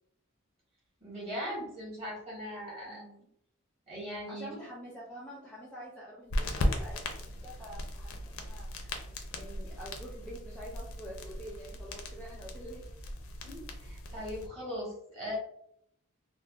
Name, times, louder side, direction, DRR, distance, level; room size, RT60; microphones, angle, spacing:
voice 1, 1.0-3.0 3.9-4.5 13.4-15.4, equal, 30° right, -5 dB, 1.2 m, -39 dB
voice 2, 2.8-3.3 4.3-9.0 9.3-12.9, equal, 5° left, -5 dB, 0.4 m, -47 dB
sound 1, 6.3-14.5, left 1 dB, 80° left, 0.5 m, -37 dB
3.3 x 2.0 x 2.4 m, 0.71 s
head